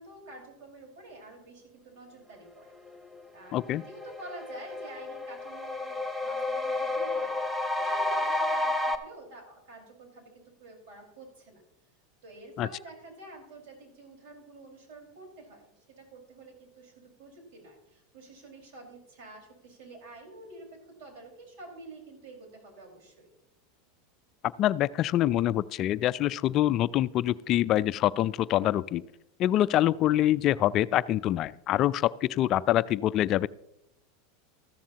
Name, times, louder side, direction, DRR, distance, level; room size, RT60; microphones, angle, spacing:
voice 1, 0.0-2.7 3.3-7.5 7.8-11.6 12.2-23.3, right 2 dB, 65° right, 1 dB, 4.8 m, -48 dB
sound 1, 3.2-3.3 3.6-9.0, left 2 dB, ahead, 1.0 m, -31 dB
voice 2, 3.5-3.8 12.6-12.7 24.6-29.0 29.4-33.5, left 13 dB, 45° left, 17 dB, 0.3 m, -25 dB
14.0 x 13.0 x 2.9 m, 0.84 s
hypercardioid pair, 110°, 0 cm